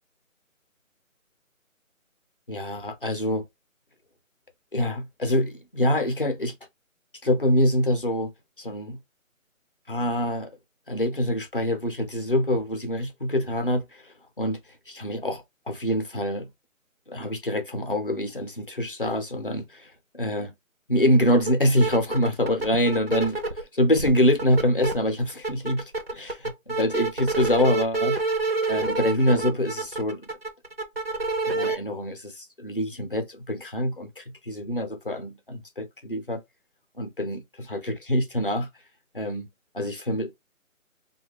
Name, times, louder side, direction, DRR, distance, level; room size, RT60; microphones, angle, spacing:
voice 1, 2.5-3.4 4.7-6.6 7.2-8.3 8.6-9.0 9.9-10.5 10.9-14.6 14.9-16.5 17.1-20.5 20.9-28.2 28.7-30.3 31.4-36.4 37.0-38.7 39.1-39.5 39.7-40.4, equal, 45° left, 0.4 m, -25 dB
sound 1, 21.4-21.5 21.8-23.6 24.0-24.9 25.3-31.8, right 3 dB, 45° right, 0.5 m, -27 dB
3.0 x 2.2 x 3.0 m
figure-of-eight pair, 180°, 41 cm